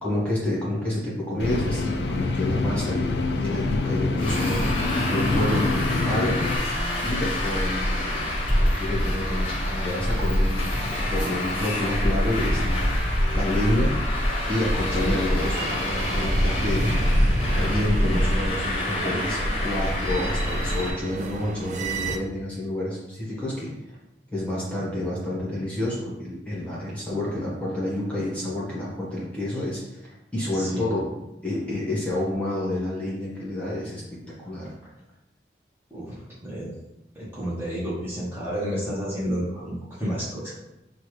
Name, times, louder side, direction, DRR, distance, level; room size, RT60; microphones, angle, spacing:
voice 1, 0.0-4.6 5.1-6.4 7.0-12.8 13.3-13.9 14.5-16.9 17.5-23.7 24.3-30.0 30.3-31.1 31.4-34.7, left 1 dB, 10° left, -7 dB, 1.2 m, -29 dB
sound 1, 1.4-6.6, left 3 dB, 80° left, 0.5 m, -26 dB
Traffic noise roadway noise, 4.2-20.9, left 1 dB, 30° left, 1.0 m, -25 dB
sound 2, 15.5-22.2, right 3 dB, 40° right, 0.3 m, -34 dB
voice 2, 30.5-31.0 35.9-36.1 36.4-36.7 37.1-40.5, equal, 15° right, -8 dB, 1.1 m, -30 dB
6.6 x 2.4 x 3.1 m, 0.92 s
head